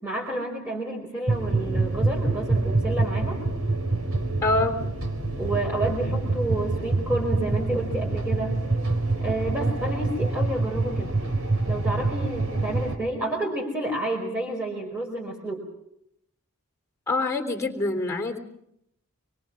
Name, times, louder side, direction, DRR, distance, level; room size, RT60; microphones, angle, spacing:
voice 1, 0.0-3.4 5.4-8.6 9.2-11.2 11.7-15.7, right 1 dB, 10° right, -2 dB, 4.8 m, -30 dB
sound 1, 1.3-13.0, right 2 dB, 65° right, 4.3 m, -26 dB
voice 2, 4.4-4.8 17.1-18.4, left 2 dB, 15° left, 5 dB, 3.3 m, -25 dB
26.0 x 23.5 x 6.3 m, 0.78 s
head